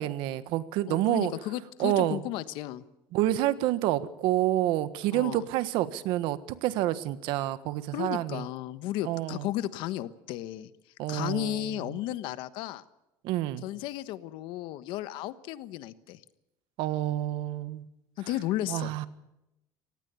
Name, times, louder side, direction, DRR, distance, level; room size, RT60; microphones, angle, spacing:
voice 1, 0.0-1.3 1.8-2.2 3.1-8.4 9.0-9.5 11.0-12.0 13.2-13.6 16.8-17.8 18.7-19.1, right 14 dB, 70° right, 14 dB, 1.5 m, -28 dB
voice 2, 0.9-2.8 5.1-5.5 7.9-10.7 11.1-12.8 13.6-16.2 18.2-18.9, left 14 dB, 70° left, 14 dB, 1.3 m, -34 dB
25.0 x 18.5 x 7.0 m, 0.90 s
cardioid pair, 160°, 9 cm